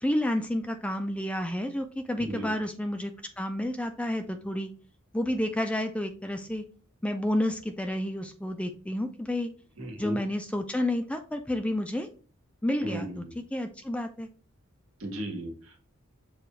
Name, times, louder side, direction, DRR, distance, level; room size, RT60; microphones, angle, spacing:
voice 1, 0.0-3.1 3.4-4.7 5.1-6.6 7.0-9.5 10.0-12.1 12.6-13.2 13.5-14.3, left 1 dB, 5° left, 7 dB, 0.3 m, -30 dB
voice 2, 2.2-2.6 9.8-10.2 12.8-13.3 15.0-15.8, right 1 dB, 75° right, 2 dB, 1.3 m, -36 dB
6.6 x 2.3 x 3.1 m, 0.39 s
head